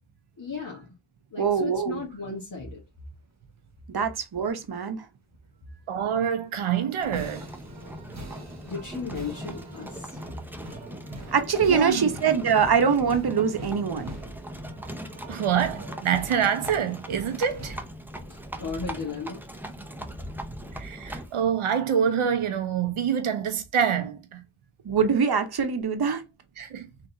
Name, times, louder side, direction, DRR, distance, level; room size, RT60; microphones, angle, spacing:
voice 1, 0.4-0.9 1.3-2.8 8.6-10.2 18.3-19.4, left 4 dB, 40° left, 1.3 m, -35 dB
voice 2, 1.4-2.0 3.9-5.0 11.3-14.1 24.8-26.2, right 6 dB, 50° right, 1.0 m, -23 dB
voice 3, 5.9-7.4 11.7-12.1 15.3-17.8 20.7-24.4 26.6-26.9, right 8 dB, 85° right, 0.9 m, -26 dB
sound 1, 6.4-17.8, right 1 dB, 35° right, 1.2 m, -44 dB
Livestock farm animals working animals, 7.0-21.4, equal, 5° right, 0.8 m, -40 dB
3.9 x 2.9 x 3.9 m
cardioid pair, 50°, 49 cm